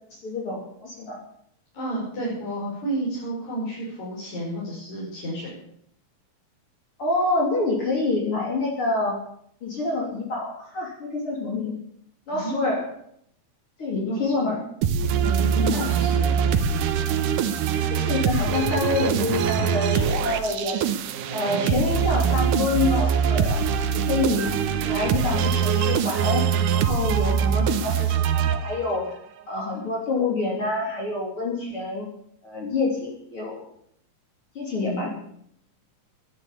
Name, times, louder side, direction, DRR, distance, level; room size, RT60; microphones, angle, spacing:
voice 1, 0.1-1.2 7.0-9.2 9.6-11.8 12.3-13.0 13.8-14.6 15.7-15.9 17.7-20.8 21.3-23.6 23.9-29.2 29.5-32.1 32.4-33.6 34.6-35.1, left 3 dB, 45° left, -2 dB, 3.7 m, -27 dB
voice 2, 1.7-5.5 12.3-12.5 14.1-14.6 15.2-16.7 21.5-21.9 27.3-27.6 34.7-35.1, right 1 dB, 65° left, -6 dB, 6.8 m, -31 dB
sound 1, 14.8-29.1, right 7 dB, 85° right, 2.6 m, -23 dB
12.5 x 11.5 x 8.5 m, 0.69 s
omnidirectional pair, 3.6 m